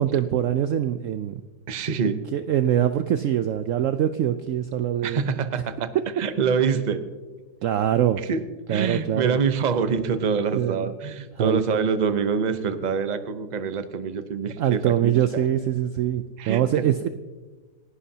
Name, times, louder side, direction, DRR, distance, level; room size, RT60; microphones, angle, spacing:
voice 1, 0.0-1.4 2.0-5.2 5.9-6.0 7.6-8.2 8.7-9.4 10.5-10.9 11.4-11.6 14.6-17.1, right 10 dB, 80° right, 10 dB, 0.7 m, -23 dB
voice 2, 1.7-2.2 5.0-5.9 6.2-7.0 8.3-8.4 8.7-15.1 16.4-16.6, right 6 dB, 40° right, 10 dB, 0.6 m, -25 dB
27.5 x 11.5 x 2.8 m, 1.3 s
omnidirectional pair, 1.9 m